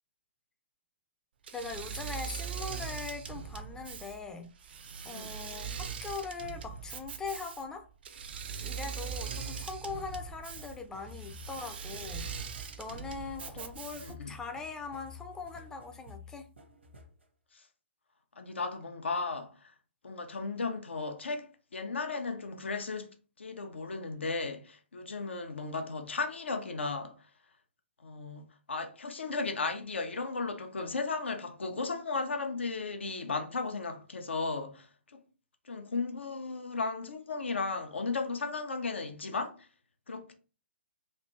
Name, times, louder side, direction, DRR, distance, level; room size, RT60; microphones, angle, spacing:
Engine / Mechanisms, 1.4-14.3, right 7 dB, 55° right, 0.5 m, -41 dB
voice 1, 1.5-4.5 5.1-7.9 8.6-12.3 12.8-16.5, left 4 dB, 10° left, 0.5 m, -41 dB
sound 1, 9.1-17.2, left 4 dB, 75° right, 0.9 m, -51 dB
voice 2, 14.0-14.4 17.5-17.6 18.4-19.7 20.0-27.2 28.0-35.2 35.7-39.6 40.1-40.3, left 4 dB, 75° left, 0.7 m, -35 dB
3.2 x 2.6 x 3.0 m
figure-of-eight pair, 130°, 6 cm